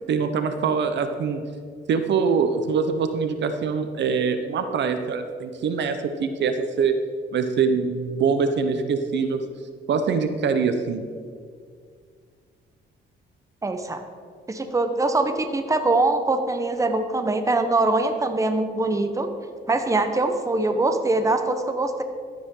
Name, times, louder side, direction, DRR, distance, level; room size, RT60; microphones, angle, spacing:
voice 1, 0.1-1.4 1.9-6.9 7.3-9.4 9.9-11.0, right 5 dB, 65° right, 8 dB, 0.9 m, -24 dB
voice 2, 13.6-14.0 14.5-19.3 19.7-22.0, right 2 dB, 15° right, 7 dB, 0.9 m, -23 dB
12.5 x 9.5 x 3.8 m, 2.1 s
cardioid pair, 90°, 20 cm